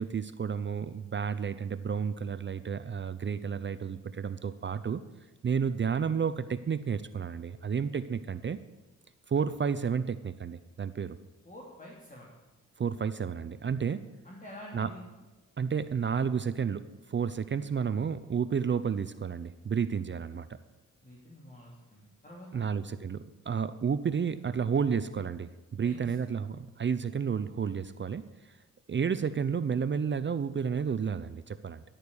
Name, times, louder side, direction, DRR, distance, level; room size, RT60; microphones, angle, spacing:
voice 1, 0.0-5.0 5.4-8.6 9.3-11.2 12.8-14.1 14.7-14.9 15.6-20.6 22.5-28.6 28.9-31.8, right 6 dB, 35° right, 13 dB, 0.6 m, -31 dB
voice 2, 11.4-12.3 14.2-15.0 21.0-22.6 25.8-26.1, left 1 dB, 25° left, -4 dB, 3.1 m, -48 dB
11.5 x 9.0 x 7.0 m, 1.1 s
cardioid pair, 70°, 31 cm